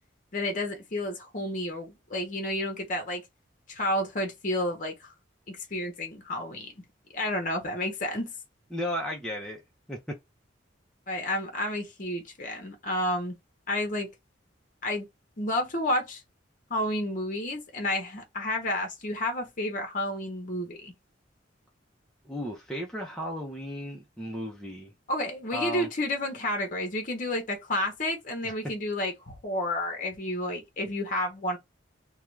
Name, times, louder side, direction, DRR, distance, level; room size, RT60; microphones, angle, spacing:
voice 1, 0.3-3.2 3.7-4.9 5.5-6.7 7.1-8.3 11.1-13.3 13.7-14.1 14.8-15.1 15.4-16.2 16.7-20.9 25.1-31.6, left 1 dB, 45° left, 0.8 m, -30 dB
voice 2, 8.7-9.6 9.9-10.2 22.3-24.9 25.5-25.9 28.4-28.5, left 1 dB, 5° left, 0.5 m, -34 dB
2.4 x 2.3 x 3.1 m
head